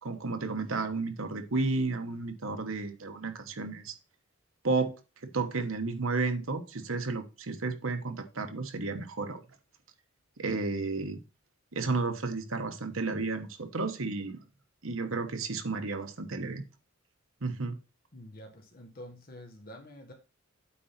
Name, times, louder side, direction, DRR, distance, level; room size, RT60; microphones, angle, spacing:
voice 1, 0.0-3.9 4.6-4.9 5.3-9.4 10.4-11.2 11.7-14.4 14.8-16.6 17.4-17.8, right 3 dB, 75° right, 1.1 m, -32 dB
voice 2, 18.1-20.1, left 1 dB, 45° left, 1.5 m, -47 dB
8.4 x 3.9 x 5.8 m
head